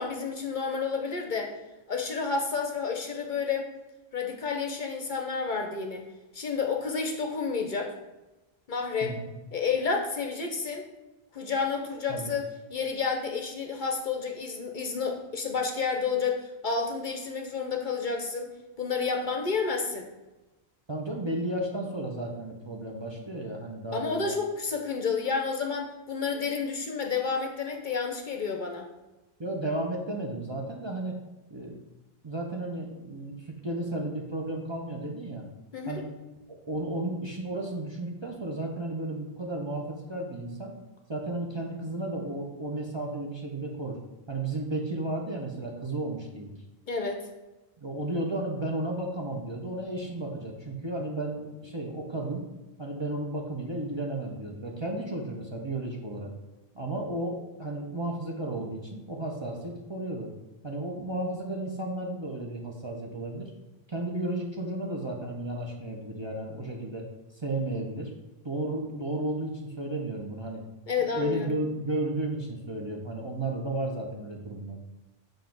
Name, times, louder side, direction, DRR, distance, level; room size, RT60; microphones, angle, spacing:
voice 1, 0.0-1.5 1.9-3.7 4.1-6.0 6.3-7.9 8.7-9.1 9.5-10.8 11.3-12.4 12.7-18.5 18.8-20.1 23.9-28.9 35.7-36.0 46.9-47.2 70.9-71.5, left 5 dB, 55° left, 3 dB, 0.8 m, -30 dB
voice 2, 9.0-9.3 12.1-12.3 20.9-24.3 29.4-31.2 31.5-31.8 32.2-35.4 35.9-36.1 36.5-40.7 41.1-44.0 44.3-46.5 47.8-52.5 52.8-56.3 56.7-60.3 60.6-63.5 63.9-67.0 67.3-68.1 68.4-70.6 71.0-74.8, right 2 dB, 30° right, 0 dB, 0.7 m, -33 dB
7.3 x 2.6 x 5.8 m, 1.1 s
omnidirectional pair, 1.1 m